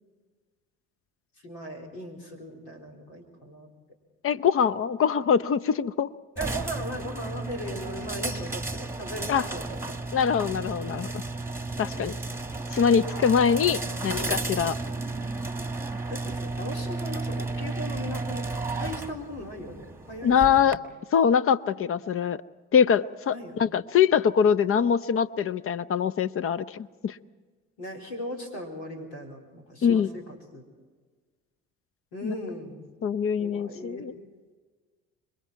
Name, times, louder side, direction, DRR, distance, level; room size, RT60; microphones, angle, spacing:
voice 1, 1.4-3.7 6.4-10.0 13.8-14.4 16.1-20.8 23.3-23.8 27.8-30.6 32.1-32.8 33.4-34.1, equal, 90° left, 0 dB, 4.1 m, -38 dB
voice 2, 4.2-6.1 9.3-9.4 10.1-11.1 11.8-12.2 12.7-14.7 20.2-20.8 21.1-22.4 22.7-27.2 29.8-30.1 32.2-32.3 33.0-34.1, left 7 dB, 40° left, 16 dB, 0.8 m, -23 dB
sound 1, 6.4-20.8, right 3 dB, 5° right, 1.3 m, -33 dB
26.5 x 22.0 x 4.6 m, 1.4 s
hypercardioid pair, 65°, 33 cm